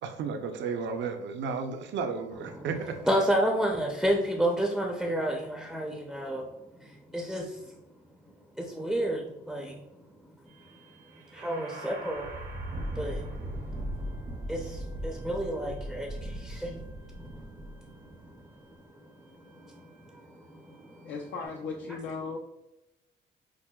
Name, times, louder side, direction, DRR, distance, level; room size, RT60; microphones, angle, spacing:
voice 1, 0.0-3.0, right 5 dB, 65° right, 5 dB, 0.6 m, -33 dB
voice 2, 3.1-6.5 6.7-7.7 8.6-9.8 11.1-12.3 12.9-13.3 13.7-13.9 14.5-16.8 17.2-18.8 19.4-21.1, right 1 dB, ahead, 0 dB, 0.5 m, -31 dB
sound 1, 10.5-21.5, right 1 dB, 85° right, 1.3 m, -40 dB
voice 3, 21.0-22.4, left 4 dB, 70° left, 1 dB, 0.5 m, -36 dB
6.0 x 2.1 x 2.2 m, 0.91 s
cardioid pair, 90°, 20 cm